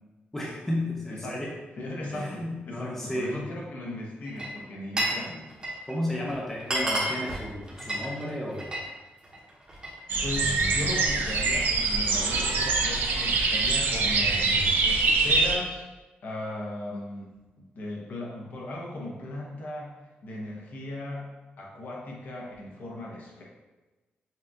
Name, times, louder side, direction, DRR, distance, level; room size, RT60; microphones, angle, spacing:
voice 1, 0.3-1.6 2.1-3.4 5.9-8.7 14.1-14.8, left 1 dB, 10° left, -4 dB, 0.5 m, -33 dB
voice 2, 1.8-5.5 10.2-14.4 14.8-15.8 16.2-19.9 20.2-21.3 21.6-23.4, left 1 dB, 55° left, -3 dB, 0.8 m, -37 dB
Glass, 4.2-5.2 5.5-5.9 6.3-6.4 6.6-8.9 9.2-10.0, right 1 dB, 25° right, 0.9 m, -31 dB
sound 1, 10.1-15.6, right 3 dB, 70° right, 0.5 m, -24 dB
5.5 x 2.4 x 2.7 m, 1.2 s
wide cardioid pair, 170°, 4 cm